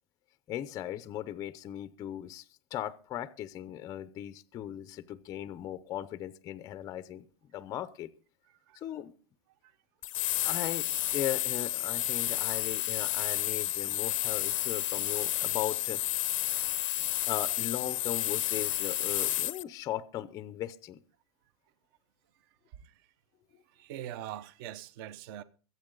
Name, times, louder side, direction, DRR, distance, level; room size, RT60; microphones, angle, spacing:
voice 1, 0.5-8.1 8.7-9.1 10.4-16.0 17.3-21.0, left 12 dB, 20° left, 0.6 m, -38 dB
voice 2, 8.5-8.8 9.6-9.8 22.4-23.1 23.7-25.4, right 11 dB, 40° right, 0.9 m, -44 dB
sound 1, 10.0-19.6, left 15 dB, 65° left, 0.7 m, -31 dB
23.0 x 8.1 x 3.9 m
supercardioid pair, 165°, 18 cm